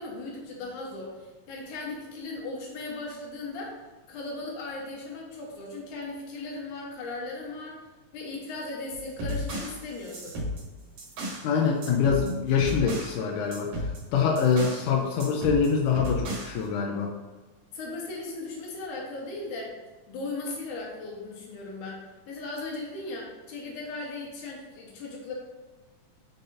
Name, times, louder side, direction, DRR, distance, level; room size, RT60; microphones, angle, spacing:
voice 1, 0.0-3.8 4.1-7.8 8.1-10.4 17.7-19.7 20.1-25.3, left 3 dB, 75° left, -1 dB, 2.7 m, -37 dB
sound 1, 8.9-11.5 11.8-13.2 13.5-14.9 15.2-16.6, left 1 dB, 65° right, 2.3 m, -34 dB
voice 2, 11.4-17.1, left 6 dB, 90° left, 1 dB, 2.2 m, -25 dB
7.7 x 5.8 x 2.7 m, 1.3 s
omnidirectional pair, 3.6 m